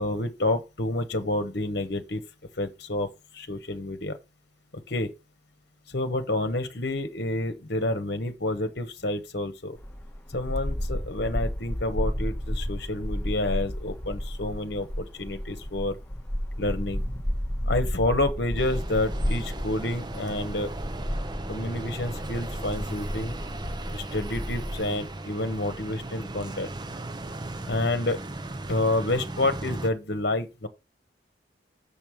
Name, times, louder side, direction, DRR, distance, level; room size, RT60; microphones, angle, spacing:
voice 1, 0.0-2.2 2.6-3.1 3.3-4.2 4.7-5.1 5.9-9.8 10.3-15.9 16.6-17.0 17.7-20.7 21.5-23.3 23.9-26.7 27.7-28.2 28.7-30.7, left 2 dB, 55° left, 1.2 m, -29 dB
sound 1, 9.8-24.8, equal, 10° left, 1.4 m, -32 dB
sound 2, 18.6-29.9, right 2 dB, 25° right, 0.6 m, -37 dB
7.1 x 5.3 x 6.2 m
head